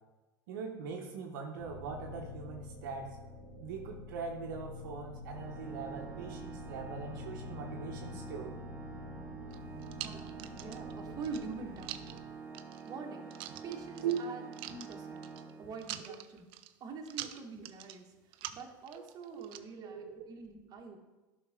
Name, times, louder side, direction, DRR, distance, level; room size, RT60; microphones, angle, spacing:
voice 1, 0.5-3.1 3.6-8.6 14.0-14.2 17.2-17.3 19.3-19.5 19.8-20.2, right 6 dB, 75° right, 1 dB, 1.0 m, -41 dB
sound 1, 1.6-12.1, left 3 dB, 65° left, 2.7 m, -47 dB
Organ, 5.3-16.2, right 6 dB, 15° right, 1.0 m, -47 dB
sound 2, 9.5-10.9 11.2-12.2 12.5-12.9 13.3-14.2 14.5-15.5 15.8-16.7 17.0-18.0 18.3-19.6, right 13 dB, 60° right, 0.5 m, -44 dB
voice 2, 9.9-12.2 12.9-13.3 13.6-15.3 15.6-16.4 16.8-18.0 18.5-21.0, right 4 dB, 40° right, 1 dB, 1.6 m, -45 dB
11.0 x 5.8 x 3.7 m, 1.1 s
hypercardioid pair, 85°, 10 cm